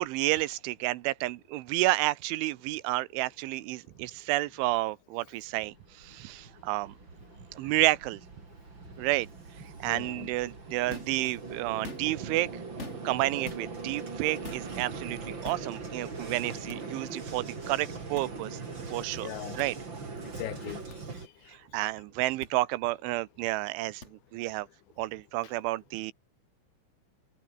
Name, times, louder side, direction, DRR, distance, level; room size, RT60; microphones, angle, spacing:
voice 1, 0.0-6.9 7.5-8.2 9.0-9.3 9.8-12.5 13.0-18.6 18.9-19.3 19.6-19.8 21.5-24.7 25.0-26.1, right 18 dB, 80° right, 3.1 m, -30 dB
Vehicle, 5.7-21.3, right 4 dB, 25° right, 4.0 m, -41 dB
voice 2, 9.8-10.3 19.2-19.6 20.2-21.6, left 15 dB, 75° left, 2.8 m, -41 dB
sound 1, 10.9-11.2 11.7-12.3 12.8-13.2 13.4-13.6 14.4-14.7 15.4-15.7 16.7-16.8 18.1-18.3 19.6-19.7 20.9-21.0 22.4-22.5 24.0-24.1, left 3 dB, 25° left, 1.7 m, -43 dB
omnidirectional pair, 5.8 m